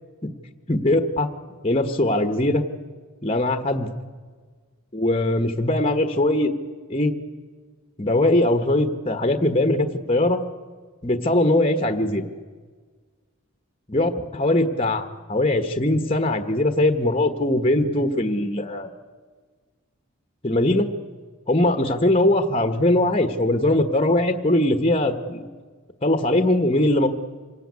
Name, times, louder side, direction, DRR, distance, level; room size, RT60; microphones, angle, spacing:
voice 1, 0.7-1.3 1.6-2.6 3.2-3.9 4.9-6.5 6.9-7.1 8.0-10.4 11.0-12.2 13.9-18.9 20.4-20.9 21.5-25.5 26.0-27.1, left 1 dB, 25° left, 7 dB, 1.3 m, -21 dB
26.5 x 17.0 x 9.6 m, 1.5 s
head